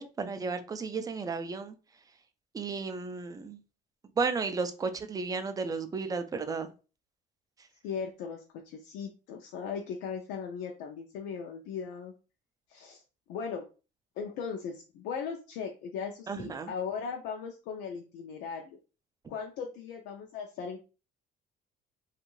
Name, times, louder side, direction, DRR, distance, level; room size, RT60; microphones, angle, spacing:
voice 1, 0.0-1.8 2.5-3.6 4.2-6.7 7.6-7.7 16.3-16.7, right 4 dB, 20° right, 9 dB, 0.4 m, -33 dB
voice 2, 7.8-12.1 12.7-13.0 13.3-13.6 14.2-18.6 19.3-20.8, left 6 dB, 90° left, 1 dB, 0.5 m, -38 dB
2.5 x 2.4 x 3.0 m, 0.33 s
cardioid pair, 110°, 17 cm